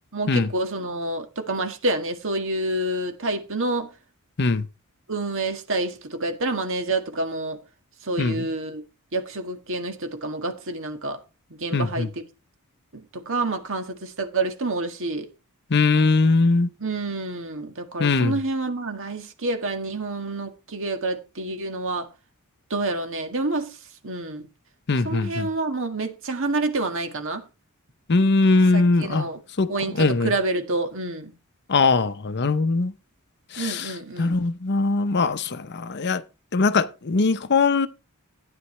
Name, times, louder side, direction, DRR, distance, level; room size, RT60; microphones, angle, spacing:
voice 1, 0.1-3.9 5.1-7.6 8.1-8.8 9.1-11.2 11.6-12.1 12.9-15.3 16.8-22.1 22.7-23.7 24.0-24.4 25.0-27.4 28.7-29.4 29.7-31.3 33.6-34.3, right 2 dB, 60° right, 1.8 m, -28 dB
voice 2, 11.7-12.1 15.7-16.7 18.0-18.4 24.9-25.5 28.1-29.3 29.6-29.7 30.0-30.3 31.7-32.9 33.5-36.2 36.5-37.9, left 3 dB, 50° left, 0.7 m, -21 dB
13.0 x 9.8 x 3.2 m
head